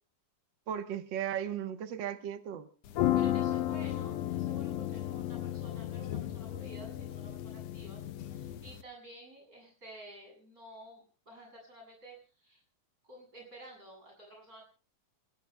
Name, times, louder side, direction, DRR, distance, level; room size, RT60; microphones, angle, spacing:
voice 1, 0.7-2.7, right 9 dB, 80° right, 9 dB, 1.0 m, -36 dB
sound 1, 2.9-8.8, left 12 dB, 75° left, 1.5 m, -33 dB
voice 2, 3.1-12.6 13.0-14.6, right 2 dB, 25° right, 1 dB, 8.3 m, -52 dB
29.0 x 17.5 x 2.2 m, 0.38 s
omnidirectional pair, 3.7 m